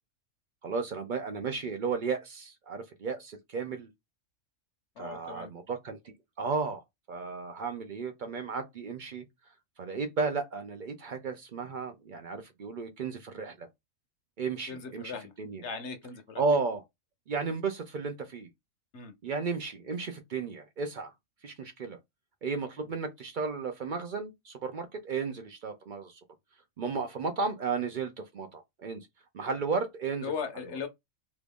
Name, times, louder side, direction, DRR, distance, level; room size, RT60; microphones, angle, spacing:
voice 1, 0.6-3.9 5.0-6.0 6.4-6.8 7.1-9.2 9.8-13.7 14.4-15.6 16.4-16.8 17.3-18.5 19.2-21.1 21.4-22.0 22.4-26.2 26.8-29.0 29.3-30.3, right 4 dB, 55° right, 0.5 m, -34 dB
voice 2, 5.0-5.5 14.7-15.3 15.6-16.4 18.9-19.1 30.2-30.9, left 5 dB, 65° left, 1.0 m, -38 dB
2.9 x 2.4 x 3.5 m
omnidirectional pair, 1.4 m